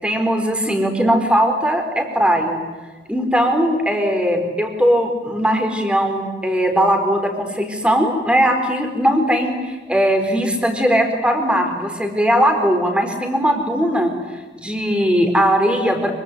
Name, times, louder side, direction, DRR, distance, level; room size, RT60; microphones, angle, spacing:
voice 1, 0.0-2.6 3.1-14.1 14.5-16.1, equal, 5° right, 5 dB, 4.3 m, -19 dB
25.0 x 24.0 x 9.5 m, 1.3 s
head